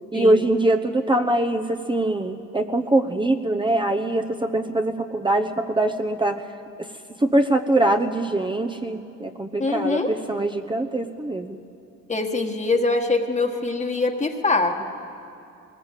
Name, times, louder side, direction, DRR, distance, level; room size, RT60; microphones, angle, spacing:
voice 1, 0.1-6.5 6.8-6.9 7.2-11.6, right 1 dB, 15° right, 4 dB, 0.9 m, -23 dB
voice 2, 9.6-10.1 12.1-14.8, left 3 dB, 25° left, 2 dB, 1.5 m, -23 dB
21.0 x 19.5 x 8.3 m, 2.7 s
cardioid pair, 90°, 30 cm